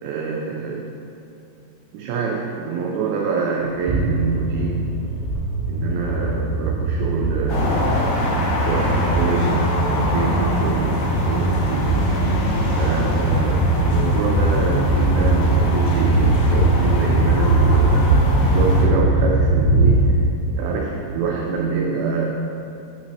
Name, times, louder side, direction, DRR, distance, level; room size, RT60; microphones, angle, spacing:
voice 1, 0.0-1.0 1.9-4.9 5.7-7.9 8.7-11.9 12.8-18.0 18.4-20.1 20.5-22.3, right 4 dB, 90° right, -1 dB, 2.1 m, -25 dB
sound 1, 3.9-20.1, right 2 dB, 70° right, 2.4 m, -20 dB
sound 2, 7.5-18.8, left 1 dB, 80° left, 1.8 m, -25 dB
8.8 x 5.7 x 2.9 m, 2.8 s
omnidirectional pair, 5.0 m